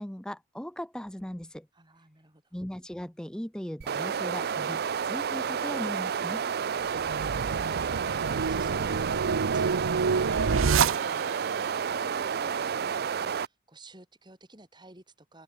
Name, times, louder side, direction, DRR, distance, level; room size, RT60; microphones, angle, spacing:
voice 1, 0.0-1.7 2.5-6.5, equal, 5° left, 0.4 m, -38 dB
voice 2, 1.7-2.4 11.9-15.4, right 1 dB, 20° right, 4.2 m, -51 dB
sound 1, 3.8-13.5, right 7 dB, 50° right, 0.4 m, -30 dB
sound 2, 6.9-11.5, right 5 dB, 85° right, 0.7 m, -28 dB
open air
head